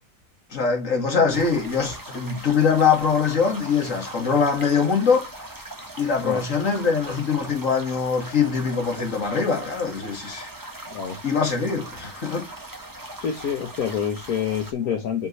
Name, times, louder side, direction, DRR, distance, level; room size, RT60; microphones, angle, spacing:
voice 1, 0.5-5.3 6.0-10.5 11.2-12.5, left 5 dB, 55° left, 2.5 m, -23 dB
sound 1, 1.3-14.7, right 1 dB, 15° right, 1.3 m, -40 dB
voice 2, 10.9-11.2 13.2-15.3, left 8 dB, 75° left, 1.5 m, -27 dB
8.0 x 5.3 x 3.1 m
omnidirectional pair, 1.6 m